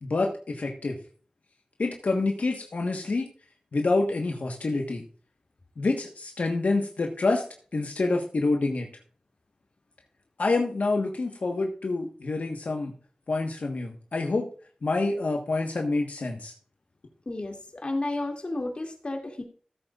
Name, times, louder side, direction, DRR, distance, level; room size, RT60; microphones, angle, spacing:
voice 1, 0.0-1.0 1.8-3.3 3.7-5.0 5.8-7.4 7.7-8.9 10.4-12.9 13.3-14.5 14.8-16.5, left 3 dB, 85° left, 2 dB, 1.4 m, -27 dB
voice 2, 17.3-19.4, left 2 dB, 50° left, 3 dB, 2.5 m, -32 dB
15.0 x 8.1 x 2.5 m, 0.42 s
wide cardioid pair, 60°, 2 cm